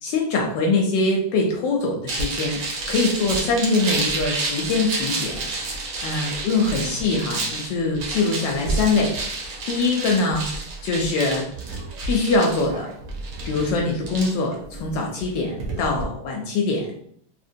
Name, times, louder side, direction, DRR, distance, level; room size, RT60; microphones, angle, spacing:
voice 1, 0.0-11.5 12.1-12.9 13.4-16.9, left 3 dB, 75° left, 0 dB, 1.2 m, -23 dB
sound 1, 2.1-16.0, right 3 dB, 65° right, 0.9 m, -30 dB
2.9 x 2.8 x 2.6 m, 0.64 s
omnidirectional pair, 2.2 m